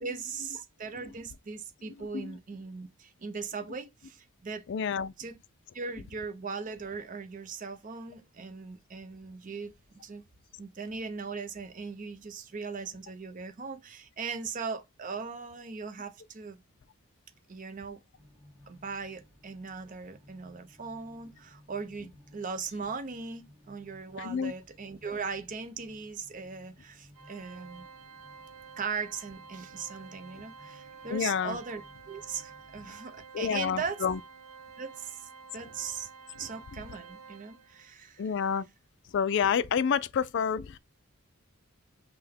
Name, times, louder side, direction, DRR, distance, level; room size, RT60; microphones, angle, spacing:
voice 1, 0.0-4.6 5.2-5.4 5.7-10.2 10.6-16.6 17.5-18.0 18.7-27.9 28.8-34.0 34.8-36.1 36.4-38.2, right 5 dB, 35° right, 0.5 m, -39 dB
voice 2, 2.0-2.4 4.7-5.1 24.2-24.5 31.1-31.6 33.3-34.2 38.2-38.7 39.1-40.8, left 7 dB, 55° left, 0.3 m, -29 dB
sound 1, 18.1-32.9, left 1 dB, 5° left, 2.5 m, -59 dB
Organ, 27.1-37.9, right 5 dB, 75° right, 0.6 m, -50 dB
5.6 x 2.2 x 3.4 m
head